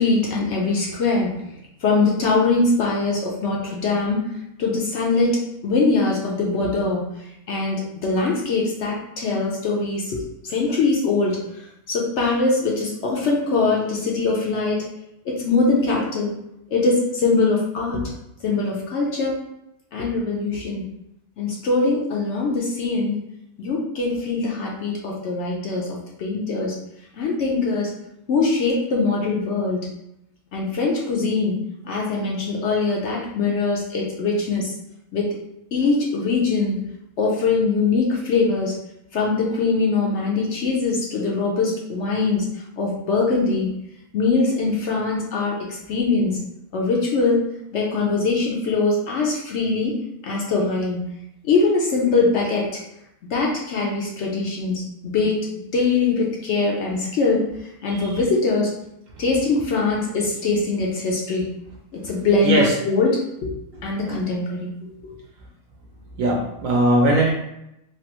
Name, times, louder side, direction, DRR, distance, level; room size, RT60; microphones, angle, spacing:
voice 1, 0.0-1.4 1.8-4.3 4.6-7.0 7.5-14.9 15.3-16.3 16.7-18.0 18.4-19.3 19.9-20.9 21.4-23.2 23.6-26.7 27.2-27.9 28.3-29.9 30.5-31.6 31.8-34.7 35.1-35.3 35.7-36.8 37.2-38.7 39.1-42.5 42.8-43.7 44.1-46.4 46.7-47.4 47.7-50.0 50.2-51.0 51.4-52.8 53.3-55.5 55.7-58.7 59.2-61.5 61.9-63.5 63.8-65.1, left 3 dB, 65° left, -2 dB, 0.8 m, -22 dB
voice 2, 66.2-67.3, right 1 dB, 70° right, -2 dB, 0.9 m, -19 dB
3.2 x 2.5 x 2.8 m, 0.83 s
omnidirectional pair, 1.6 m